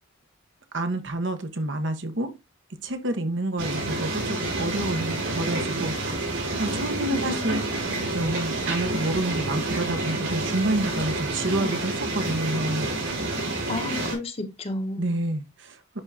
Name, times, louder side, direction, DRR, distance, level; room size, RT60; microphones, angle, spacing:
voice 1, 0.7-2.3 2.8-5.9 6.2-7.6 8.1-12.9 15.0-16.0, right 2 dB, 65° right, 1.1 m, -28 dB
sound 1, 3.6-14.1, right 2 dB, 85° right, 4.0 m, -29 dB
voice 2, 7.1-8.1 13.7-15.2, left 2 dB, 30° left, 1.1 m, -33 dB
11.0 x 3.6 x 2.7 m
head